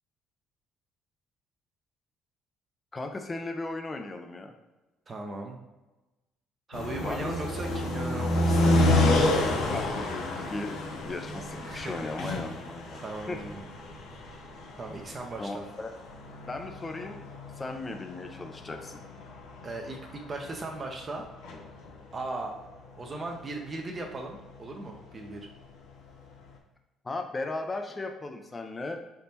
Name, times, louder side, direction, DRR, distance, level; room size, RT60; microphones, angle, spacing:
voice 1, 2.9-4.5 7.0-7.3 9.4-13.0 13.3-13.4 15.4-15.9 16.5-17.2 17.6-19.0 27.0-29.0, left 2 dB, 30° left, 5 dB, 0.5 m, -36 dB
voice 2, 5.1-5.6 6.7-9.0 11.6-12.4 12.9-13.6 14.8-15.6 19.6-21.2 22.1-22.5 22.9-25.5, right 2 dB, 35° right, 1 dB, 0.6 m, -38 dB
sound 1, 6.7-21.9 22.2-22.3, left 1 dB, 75° left, 0.7 m, -29 dB
4.0 x 3.5 x 2.8 m, 1.1 s
supercardioid pair, 70°, 0 cm